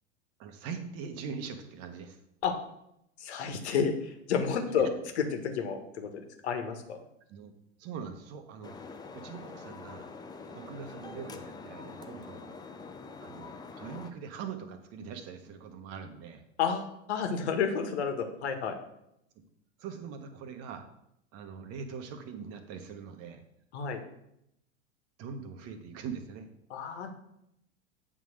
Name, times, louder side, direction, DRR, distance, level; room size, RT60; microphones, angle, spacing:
voice 1, 0.4-2.2 4.7-4.8 7.3-7.5 7.8-8.7 9.1-10.1 10.5-12.5 13.2-16.4 19.8-20.9 21.3-23.4 25.2-26.5, right 6 dB, 40° right, 7 dB, 1.3 m, -42 dB
voice 2, 3.2-4.9 5.2-7.0 16.6-18.8 23.7-24.0 26.7-27.1, left 6 dB, 65° left, 6 dB, 1.5 m, -31 dB
sound 1, 8.6-14.1, left 4 dB, 10° left, 0.5 m, -45 dB
8.0 x 3.9 x 6.5 m, 0.79 s
hypercardioid pair, 95°, 36 cm